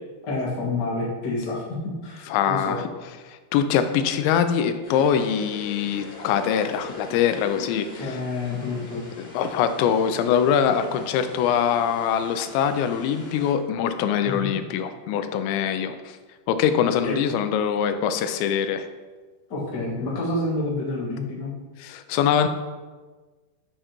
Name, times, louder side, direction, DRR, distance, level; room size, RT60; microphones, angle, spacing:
voice 1, 0.2-2.8 8.0-9.0 14.2-14.5 17.0-17.2 19.5-21.5, left 2 dB, 70° left, -5 dB, 1.0 m, -28 dB
voice 2, 2.3-2.9 3.2-8.2 9.2-16.2 16.5-18.9 21.8-22.5, left 8 dB, 90° left, 9 dB, 2.9 m, -23 dB
sound 1, 4.8-13.5, left 3 dB, 50° left, 2.4 m, -43 dB
8.8 x 6.7 x 3.0 m, 1.3 s
omnidirectional pair, 5.0 m